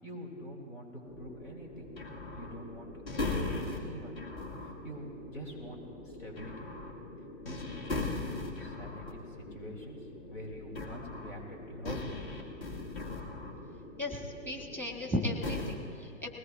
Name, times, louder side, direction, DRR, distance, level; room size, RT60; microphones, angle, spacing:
voice 1, 0.0-1.9 2.3-4.2 4.6-5.8 6.0-6.7 7.4-10.0 10.3-12.2, equal, 80° left, 0 dB, 3.1 m, -45 dB
sound 1, 1.1-15.1 15.4-15.7, left 2 dB, 50° left, 2.1 m, -40 dB
voice 2, 14.0-16.3, left 1 dB, 5° left, 3 dB, 1.5 m, -35 dB
20.5 x 17.5 x 2.6 m, 2.4 s
figure-of-eight pair, 115°, 38 cm